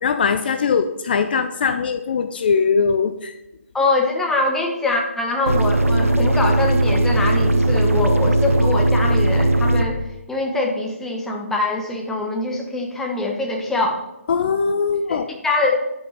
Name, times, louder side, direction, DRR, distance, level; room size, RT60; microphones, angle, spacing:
voice 1, 0.0-3.3 14.3-15.3, left 5 dB, 45° left, 10 dB, 0.5 m, -20 dB
voice 2, 3.7-10.0 10.3-14.0 15.1-15.2 15.4-15.8, left 2 dB, 5° left, 1 dB, 1.1 m, -23 dB
sound 1, 5.5-9.9, right 1 dB, 80° right, 1.0 m, -18 dB
11.0 x 5.4 x 5.7 m, 0.95 s
figure-of-eight pair, 140°, 7 cm